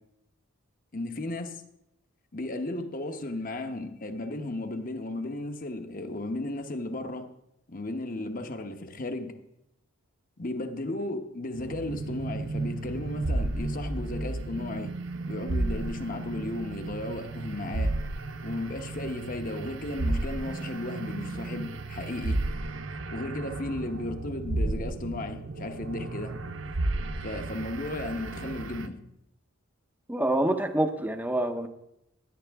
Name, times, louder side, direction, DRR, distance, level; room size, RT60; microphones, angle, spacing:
voice 1, 0.9-1.6 2.3-7.3 7.7-9.3 10.4-14.9 15.3-17.9 18.4-22.4 23.1-26.3 27.2-29.0, left 2 dB, 40° left, 7 dB, 0.9 m, -35 dB
sound 1, 11.5-28.9, right 2 dB, 60° right, 0.7 m, -33 dB
voice 2, 30.1-31.7, right 1 dB, 10° right, 7 dB, 0.7 m, -26 dB
16.5 x 10.0 x 3.5 m, 0.83 s
head